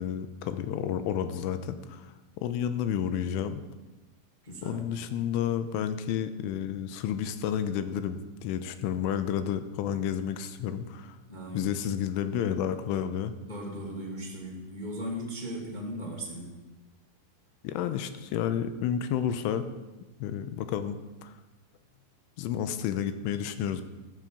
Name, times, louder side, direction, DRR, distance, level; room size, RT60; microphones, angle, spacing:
voice 1, 0.0-3.6 4.6-11.2 11.5-13.3 17.6-19.7 20.2-21.3 22.4-23.8, left 9 dB, 85° left, 10 dB, 3.2 m, -31 dB
voice 2, 4.4-4.9 11.3-11.7 13.4-16.6, equal, 30° left, -3 dB, 0.8 m, -37 dB
14.0 x 13.5 x 5.1 m, 1.1 s
omnidirectional pair, 5.8 m